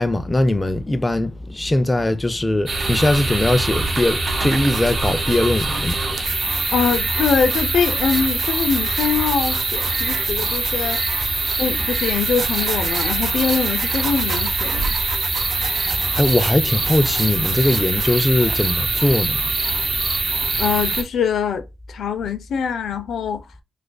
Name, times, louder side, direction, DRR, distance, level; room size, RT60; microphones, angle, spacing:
voice 1, 0.0-6.0 16.2-19.5, left 1 dB, 20° left, 0.4 m, -20 dB
sound 1, 2.7-21.0, right 3 dB, 45° right, 1.0 m, -23 dB
sound 2, 3.7-3.9 4.4-18.5, right 5 dB, 70° right, 0.6 m, -34 dB
voice 2, 6.7-11.0 11.6-15.0 20.6-23.6, left 6 dB, 75° left, 0.4 m, -23 dB
4.5 x 2.5 x 2.2 m
cardioid pair, 60°, 0 cm